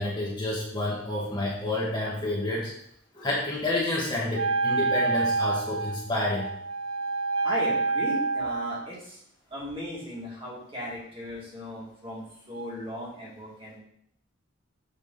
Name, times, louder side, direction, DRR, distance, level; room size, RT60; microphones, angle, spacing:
voice 1, 0.0-2.7 3.2-6.5, left 2 dB, 20° left, -5 dB, 1.3 m, -29 dB
Wind instrument woodwind instrument, 4.3-8.9, right 3 dB, 85° right, 0.5 m, -27 dB
voice 2, 7.4-9.2 9.5-13.8, left 1 dB, 25° right, -5 dB, 2.2 m, -37 dB
6.9 x 4.7 x 4.0 m, 0.70 s
head